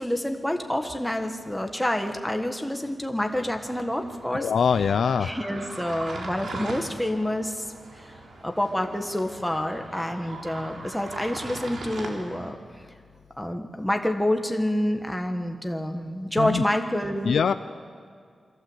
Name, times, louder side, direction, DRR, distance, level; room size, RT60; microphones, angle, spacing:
voice 1, 0.0-4.5 5.2-8.1 8.4-12.6 13.4-17.4, left 1 dB, 5° left, 4 dB, 1.6 m, -28 dB
sound 1, 3.2-12.5, right 2 dB, 70° right, 3.8 m, -40 dB
voice 2, 4.3-5.3 16.4-16.6 17.2-17.5, left 6 dB, 85° left, 11 dB, 0.7 m, -23 dB
28.0 x 22.5 x 8.1 m, 2.1 s
wide cardioid pair, 150°, 0 cm